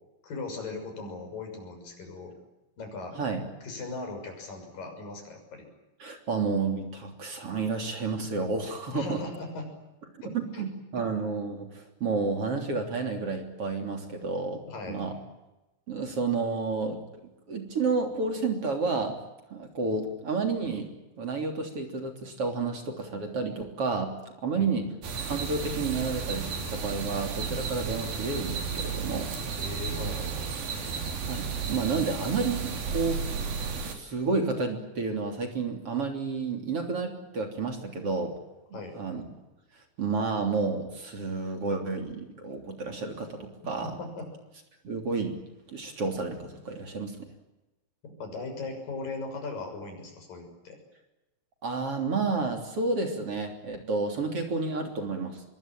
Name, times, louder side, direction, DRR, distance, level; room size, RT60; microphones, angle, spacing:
voice 1, 0.2-2.3 2.8-3.2 3.6-5.7 8.9-9.7 10.2-10.6 14.7-15.0 24.5-24.9 29.6-30.8 38.7-39.0 44.0-44.3 48.0-50.8, left 3 dB, 75° left, 4 dB, 8.1 m, -38 dB
voice 2, 6.0-9.2 10.3-14.6 14.9-15.2 15.9-17.0 17.5-19.2 19.5-20.9 21.2-24.1 24.4-24.9 25.3-29.3 30.8-31.0 31.3-38.3 38.7-39.2 40.0-44.0 44.8-45.4 45.7-47.2 51.6-55.4, right 4 dB, 40° right, 4 dB, 4.1 m, -30 dB
sound 1, 25.0-34.0, right 6 dB, 85° right, 5.0 m, -33 dB
25.5 x 23.0 x 9.0 m, 1.0 s
omnidirectional pair, 4.0 m